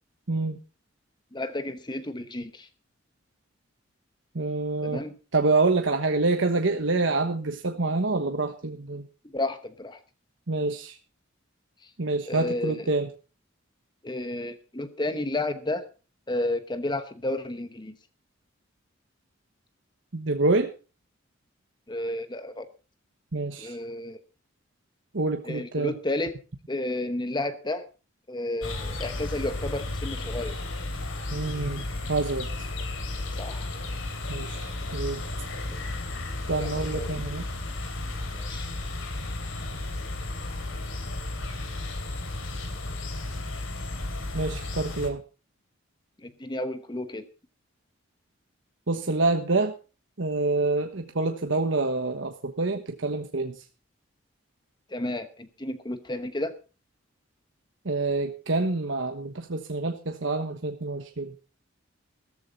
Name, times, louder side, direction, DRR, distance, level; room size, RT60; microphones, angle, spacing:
voice 1, 1.3-2.7 4.8-5.1 9.3-10.0 12.3-12.8 14.0-15.9 16.3-17.9 21.9-22.7 23.6-24.2 25.5-26.3 26.7-27.9 28.3-30.6 33.4-33.7 35.7-35.8 36.6-37.2 38.3-38.7 46.2-47.2 54.9-56.6, left 1 dB, 20° left, 10 dB, 1.0 m, -32 dB
voice 2, 4.3-5.0 5.3-9.1 10.5-11.0 12.0-13.1 20.1-20.7 23.3-23.8 25.1-26.0 31.3-32.7 34.3-35.2 36.5-37.4 44.3-45.2 48.9-49.7 50.2-53.6 57.8-61.3, right 3 dB, 65° right, 5 dB, 1.2 m, -27 dB
sound 1, 28.6-45.1, left 2 dB, 80° left, 3.0 m, -33 dB
14.0 x 14.0 x 4.1 m, 0.34 s
head